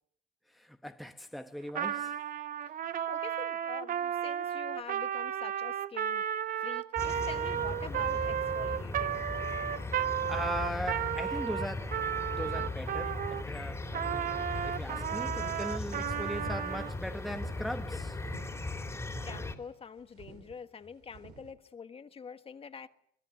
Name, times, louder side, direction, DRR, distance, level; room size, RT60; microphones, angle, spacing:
voice 1, 0.5-2.2 10.3-18.2, equal, ahead, 1.0 m, -40 dB
Trumpet, 1.7-13.4 13.9-16.9, right 10 dB, 55° right, 0.9 m, -33 dB
voice 2, 3.1-6.2 6.6-9.2 19.2-22.9, left 6 dB, 35° left, 1.5 m, -46 dB
sound 1, 7.0-19.6, left 2 dB, 15° left, 3.0 m, -38 dB
sound 2, 14.5-21.5, right 7 dB, 80° right, 3.7 m, -52 dB
24.0 x 21.0 x 7.0 m
cardioid pair, 110°, 17 cm